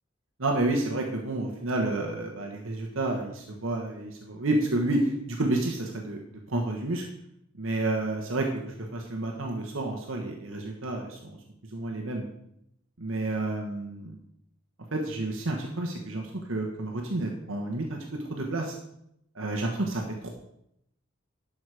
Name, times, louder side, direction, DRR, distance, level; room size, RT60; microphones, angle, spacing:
voice 1, 0.4-6.2 6.5-7.0 7.5-11.4 11.7-12.3 13.0-14.1 14.9-18.8 19.3-20.3, right 2 dB, 70° right, 1 dB, 1.3 m, -30 dB
12.0 x 6.5 x 4.8 m, 0.77 s
head